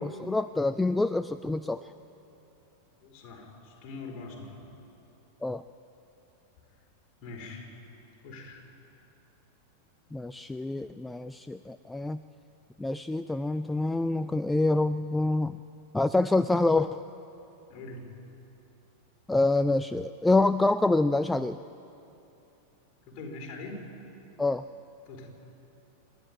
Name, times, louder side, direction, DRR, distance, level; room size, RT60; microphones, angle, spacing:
voice 1, 0.0-1.9 5.4-5.6 10.1-12.2 12.8-15.6 15.9-16.9 19.3-21.6 24.4-24.7, left 2 dB, 5° left, 13 dB, 0.4 m, -26 dB
voice 2, 3.0-4.5 7.2-7.7 8.2-8.6 17.7-18.1 23.1-23.8 25.1-25.3, left 3 dB, 35° left, -1 dB, 4.5 m, -42 dB
26.5 x 11.0 x 9.2 m, 2.9 s
figure-of-eight pair, 90°, 0 cm